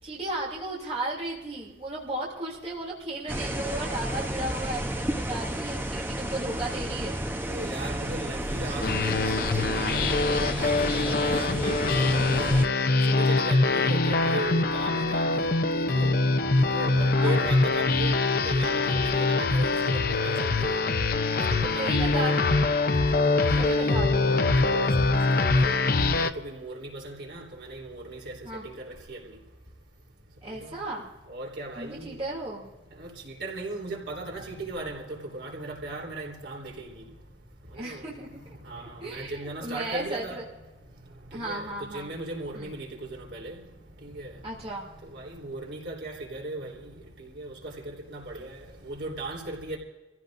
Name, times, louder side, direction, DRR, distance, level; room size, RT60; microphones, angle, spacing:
voice 1, 0.0-7.2 17.0-17.5 21.8-22.8 23.6-24.4 28.4-28.6 30.4-31.1 31.8-32.7 37.7-40.4 41.3-42.1 42.5-42.7 44.4-44.9, right 1 dB, 35° right, 2.8 m, -35 dB
sound 1, 3.3-12.7, right 1 dB, 10° right, 0.9 m, -31 dB
voice 2, 7.4-12.7 13.1-16.1 16.6-20.8 21.3-22.4 23.1-24.1 24.5-29.2 30.5-30.8 31.3-32.2 33.0-37.1 37.7-38.0 38.3-40.4 41.3-43.6 44.0-44.4 45.0-49.8, right 2 dB, 75° right, 3.6 m, -37 dB
sound 2, 8.8-26.3, left 3 dB, 55° left, 0.7 m, -24 dB
26.5 x 16.0 x 2.6 m
head